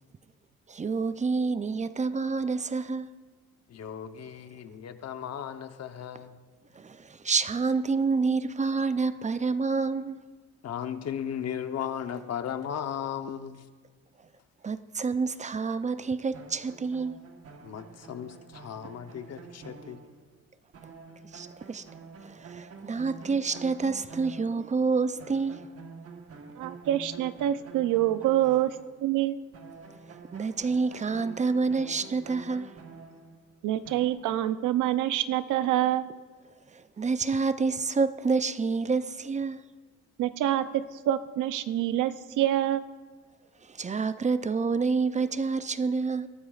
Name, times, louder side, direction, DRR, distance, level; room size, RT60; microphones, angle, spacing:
voice 1, 0.7-3.1 6.7-10.2 14.6-17.2 21.3-21.9 22.2-25.6 30.1-32.7 36.7-39.6 43.6-46.3, right 4 dB, 25° right, 0.5 m, -28 dB
voice 2, 3.7-6.4 10.6-13.7 17.6-20.0, left 9 dB, 55° left, 0.9 m, -36 dB
sound 1, 16.3-20.5 20.7-24.9 25.2-29.3 29.5-34.1, right 5 dB, 50° right, 1.3 m, -47 dB
voice 3, 26.6-28.8 29.0-29.4 33.6-36.1 40.2-42.8, right 12 dB, 85° right, 0.6 m, -26 dB
22.0 x 12.5 x 2.4 m
cardioid pair, 90°, 30 cm